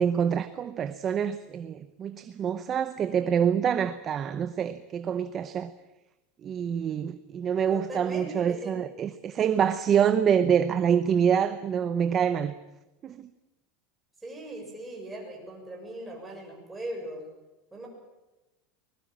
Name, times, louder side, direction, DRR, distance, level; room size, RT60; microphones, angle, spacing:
voice 1, 0.0-5.7 6.4-12.5 13.0-13.3, right 8 dB, 25° right, 0.8 m, -26 dB
voice 2, 7.7-8.7 14.2-17.2 17.7-17.9, right 1 dB, 5° right, 6.6 m, -39 dB
24.0 x 21.0 x 7.5 m
supercardioid pair, 165°, 0 cm